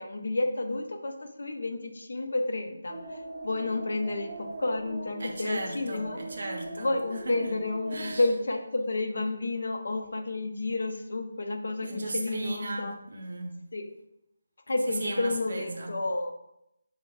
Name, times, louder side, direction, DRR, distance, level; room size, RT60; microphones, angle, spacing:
voice 1, 0.0-6.2 6.8-12.9 13.7-13.9 14.7-16.3, left 2 dB, 70° left, 5 dB, 0.4 m, -31 dB
sound 1, 2.9-8.3, right 2 dB, ahead, 0.8 m, -41 dB
voice 2, 5.2-6.9 7.3-7.5 7.9-8.2 11.8-13.6 14.9-16.0, right 2 dB, 50° right, 2 dB, 0.5 m, -36 dB
3.2 x 2.1 x 3.5 m, 0.82 s
figure-of-eight pair, 175°, 0 cm